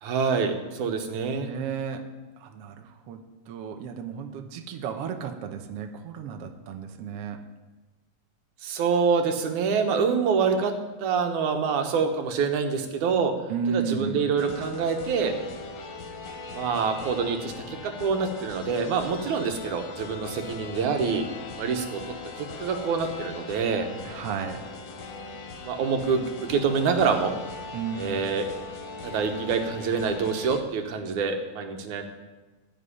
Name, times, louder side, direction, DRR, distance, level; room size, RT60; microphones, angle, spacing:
voice 1, 0.0-1.5 8.6-10.7 11.0-13.3 13.7-15.3 16.5-21.3 21.6-22.0 22.4-23.9 25.6-27.3 28.0-28.4 29.0-32.0, right 5 dB, 90° right, 5 dB, 2.7 m, -26 dB
voice 2, 1.4-2.0 2.4-3.2 3.5-7.4 13.5-14.2 24.1-24.6 27.7-28.2, right 6 dB, 65° right, 5 dB, 1.8 m, -33 dB
sound 1, 14.4-30.6, left 4 dB, 65° left, 2.3 m, -40 dB
16.0 x 5.5 x 9.9 m, 1.2 s
omnidirectional pair, 3.3 m